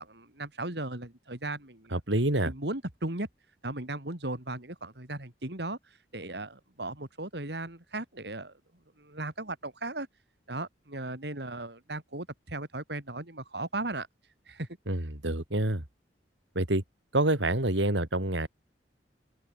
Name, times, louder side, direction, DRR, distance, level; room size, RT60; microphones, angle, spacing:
voice 1, 0.0-2.0 2.4-3.3 3.6-8.5 9.0-10.1 10.5-14.1 14.5-14.7, right 2 dB, 60° right, 3.2 m, -37 dB
voice 2, 1.9-2.5 14.9-15.8 16.5-16.8 17.1-18.5, right 1 dB, 80° right, 3.3 m, -27 dB
open air
head